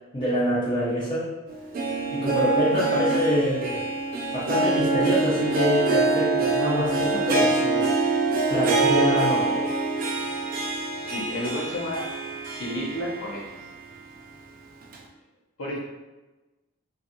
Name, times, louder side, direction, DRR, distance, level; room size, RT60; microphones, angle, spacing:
voice 1, 0.1-1.3 2.1-3.8 4.3-7.8 8.5-9.6, equal, 20° left, -10 dB, 0.6 m, -26 dB
Harp, 1.5-13.6 14.0-14.1 14.9-15.0, right 3 dB, 45° right, 0.3 m, -25 dB
voice 2, 11.1-12.1 12.5-13.4 15.6-15.8, equal, 90° left, -3 dB, 0.7 m, -31 dB
2.7 x 2.3 x 2.5 m, 1.1 s
head